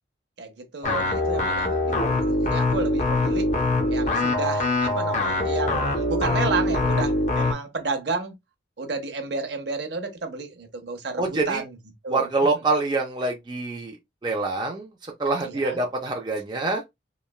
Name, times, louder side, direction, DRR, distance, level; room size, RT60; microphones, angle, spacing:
voice 1, 0.4-3.5 3.9-8.3 8.8-11.8 12.0-12.3 15.4-15.8, right 4 dB, 65° right, 0.6 m, -31 dB
sound 1, 0.8-7.5, left 2 dB, 40° left, 0.5 m, -23 dB
voice 2, 11.2-11.6 12.1-14.0 14.2-14.9 15.2-16.8, right 3 dB, 20° right, 0.4 m, -25 dB
3.0 x 2.2 x 2.3 m
head